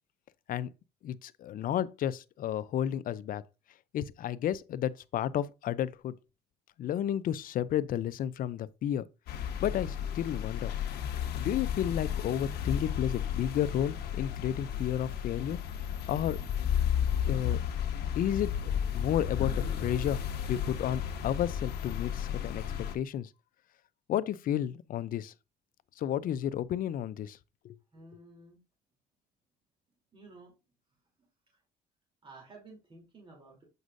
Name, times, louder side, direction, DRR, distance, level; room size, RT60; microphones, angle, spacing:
voice 1, 1.0-3.4 3.9-6.2 6.8-9.0 9.6-10.7 11.3-15.6 16.1-16.4 17.3-17.6 18.1-20.2 20.5-22.6 22.9-23.3 24.1-25.3 26.0-27.4 27.6-27.8, left 10 dB, 55° left, 0.5 m, -32 dB
sound 1, 9.3-23.0, left 9 dB, 70° left, 1.3 m, -33 dB
voice 2, 27.9-28.6 30.1-30.5 31.5-31.6 32.2-33.6, right 2 dB, 30° right, 3.2 m, -53 dB
7.9 x 6.1 x 2.6 m
cardioid pair, 110°, 17 cm